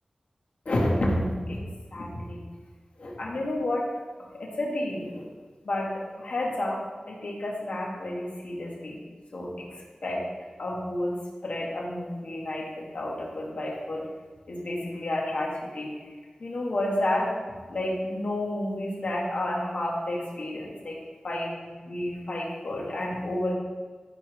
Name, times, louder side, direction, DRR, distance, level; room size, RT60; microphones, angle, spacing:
voice 1, 0.7-1.6 1.9-2.5 3.0-3.9 4.3-5.3 5.6-6.8 7.1-9.0 9.3-9.7 10.0-10.2 10.6-14.1 14.5-16.1 16.4-17.3 17.7-21.0 21.2-23.5, left 1 dB, 75° left, -3 dB, 2.3 m, -30 dB
12.5 x 4.4 x 5.3 m, 1.4 s
wide cardioid pair, 80°, 2 cm